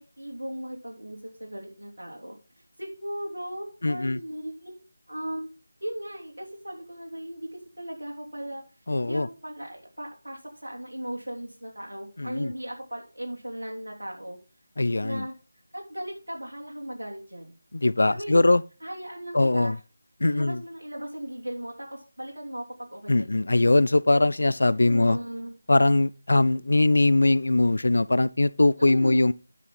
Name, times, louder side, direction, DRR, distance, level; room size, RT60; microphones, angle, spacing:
voice 1, 0.2-2.4 2.8-4.8 5.1-5.5 5.8-8.6 9.0-14.4 15.0-15.3 15.7-17.5 18.0-18.5 18.8-19.8 20.3-23.1 24.9-25.6 28.8-29.3, equal, 75° right, 3.3 m, -37 dB
voice 2, 3.8-4.2 8.9-9.3 12.2-12.5 14.8-15.3 17.7-18.6 19.3-19.8 20.2-20.6 23.1-25.2 25.7-29.3, left 2 dB, 60° left, 0.5 m, -21 dB
9.8 x 6.8 x 3.9 m
figure-of-eight pair, 160°, 0 cm